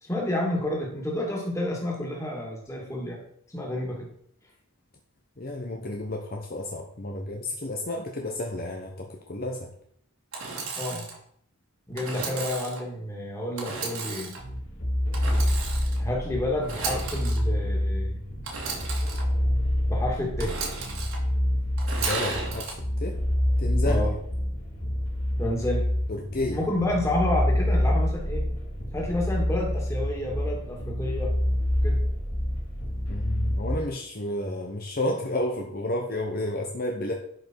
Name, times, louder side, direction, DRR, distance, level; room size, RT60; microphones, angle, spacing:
voice 1, 0.0-3.2 3.5-4.1 10.8-11.1 11.9-14.3 16.0-18.2 19.9-20.5 23.9-24.1 25.4-25.9 26.5-28.4 28.9-31.3 31.8-32.0, left 1 dB, 15° left, -1 dB, 2.5 m, -29 dB
voice 2, 5.4-9.7 21.9-22.7 23.0-23.2 23.6-24.1 26.1-26.7 33.1-37.1, left 1 dB, 45° left, 1 dB, 1.0 m, -31 dB
Engine / Sawing, 10.3-11.2 12.0-12.8 13.6-14.4 15.1-16.0 16.6-17.4 18.4-19.2 20.4-21.2 21.8-22.7, right 4 dB, 75° right, 2.8 m, -34 dB
sound 1, 14.4-33.8, left 1 dB, 75° left, 3.4 m, -27 dB
11.5 x 5.4 x 4.7 m, 0.65 s
head